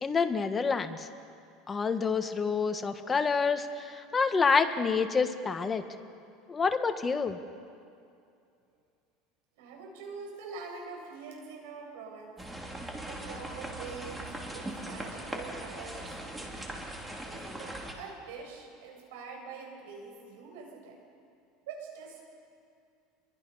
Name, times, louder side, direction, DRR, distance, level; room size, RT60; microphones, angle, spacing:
voice 1, 0.0-1.1 1.7-5.8 6.5-7.4, left 5 dB, 20° left, 7 dB, 1.4 m, -28 dB
voice 2, 9.6-12.4 13.0-16.4 17.2-21.0 21.7-22.2, right 4 dB, 85° right, -1 dB, 8.0 m, -45 dB
sound 1, 12.4-17.9, right 1 dB, 10° right, 3.1 m, -40 dB
29.0 x 23.0 x 5.6 m, 2.4 s
supercardioid pair, 140°, 0 cm